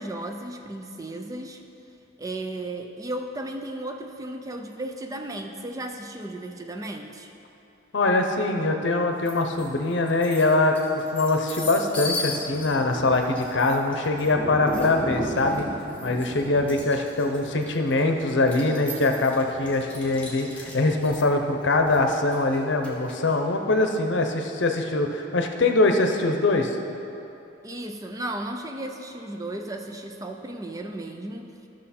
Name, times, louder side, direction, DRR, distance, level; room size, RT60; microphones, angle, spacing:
voice 1, 0.0-1.6 2.2-7.3 16.4-16.5 27.6-31.6, right 1 dB, 15° right, 4 dB, 0.4 m, -35 dB
voice 2, 7.9-10.8 11.1-15.7 16.0-26.8, left 2 dB, 70° left, 5 dB, 0.8 m, -23 dB
sound 1, 9.3-9.7 10.1-23.3, left 1 dB, 5° left, 1.6 m, -35 dB
13.0 x 6.3 x 4.3 m, 2.9 s
head